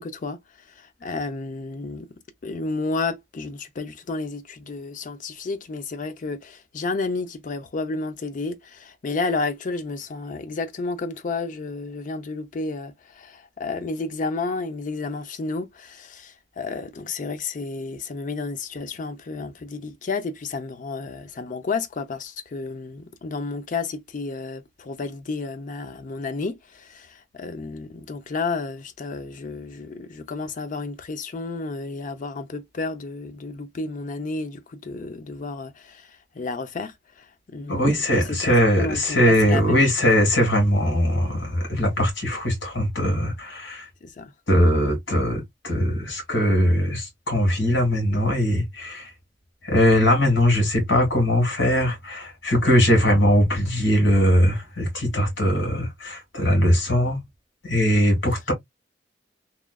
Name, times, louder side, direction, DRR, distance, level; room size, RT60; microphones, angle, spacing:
voice 1, 0.0-2.1 2.4-39.9 44.0-44.3, left 3 dB, 45° left, 0.5 m, -31 dB
voice 2, 37.7-43.9 44.5-49.1 49.6-57.2 57.6-58.5, equal, 80° left, 1.6 m, -20 dB
3.0 x 2.3 x 2.2 m
head